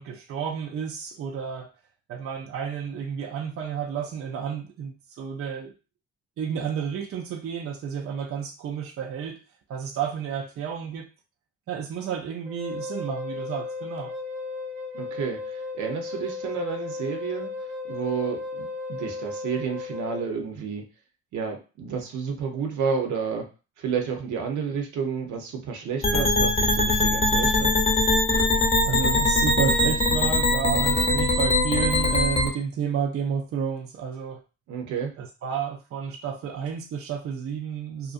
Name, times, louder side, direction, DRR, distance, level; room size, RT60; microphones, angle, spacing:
voice 1, 0.0-1.7 2.1-5.7 6.4-9.4 9.7-11.1 11.7-14.1 28.8-34.4 35.2-38.1, right 7 dB, 50° right, 1 dB, 0.4 m, -31 dB
Wind instrument woodwind instrument, 12.5-20.3, left 3 dB, 5° right, 0.9 m, -35 dB
voice 2, 14.9-17.5 17.8-20.8 21.3-23.5 23.8-27.7 34.7-35.1, right 6 dB, 75° right, 3 dB, 0.8 m, -30 dB
sound 1, 26.0-32.5, left 2 dB, 20° left, 0.7 m, -22 dB
2.5 x 2.2 x 2.4 m, 0.33 s
cardioid pair, 90°, 30 cm